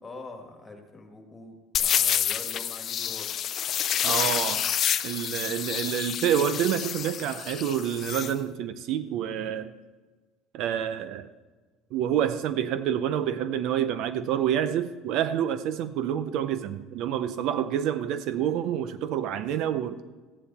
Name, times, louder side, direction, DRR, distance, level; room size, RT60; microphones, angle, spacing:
voice 1, 0.0-3.3 4.2-4.4 18.3-18.5, left 2 dB, 15° left, 3 dB, 1.9 m, -44 dB
sound 1, 1.7-8.3, left 9 dB, 40° left, 0.5 m, -28 dB
voice 2, 4.0-4.6 5.0-9.7 10.5-11.3 11.9-20.0, right 10 dB, 60° right, 13 dB, 0.6 m, -28 dB
14.0 x 10.0 x 4.2 m, 1.3 s
cardioid pair, 145°, 0 cm